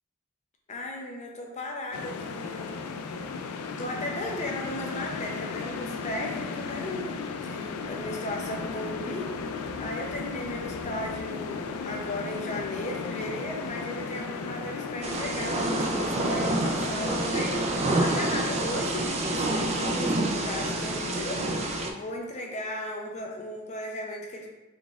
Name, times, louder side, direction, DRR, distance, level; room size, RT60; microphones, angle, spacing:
voice 1, 0.7-2.7 3.7-9.3 9.8-24.5, left 1 dB, 35° left, 0 dB, 0.5 m, -36 dB
sound 1, 1.9-21.9, left 4 dB, 85° left, 0.3 m, -36 dB
Thunder / Rain, 15.0-21.9, right 2 dB, 30° right, 0.3 m, -28 dB
3.9 x 3.5 x 2.4 m, 1.1 s
head